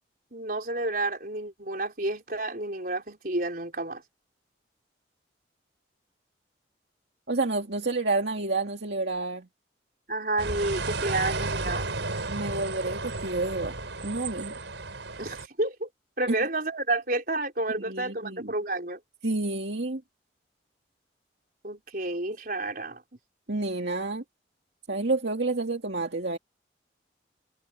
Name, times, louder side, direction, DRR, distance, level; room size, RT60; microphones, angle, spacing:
voice 1, 0.3-4.0 10.1-11.9 15.2-15.9 16.2-19.0 21.6-23.0, right 2 dB, 50° right, 4.5 m, -30 dB
voice 2, 7.3-9.5 12.3-13.7 14.0-14.5 16.3-16.4 17.9-18.5 19.2-20.0 23.5-24.2 24.9-26.4, right 2 dB, 65° right, 2.2 m, -29 dB
sound 1, 10.4-15.5, right 3 dB, 85° right, 4.7 m, -33 dB
head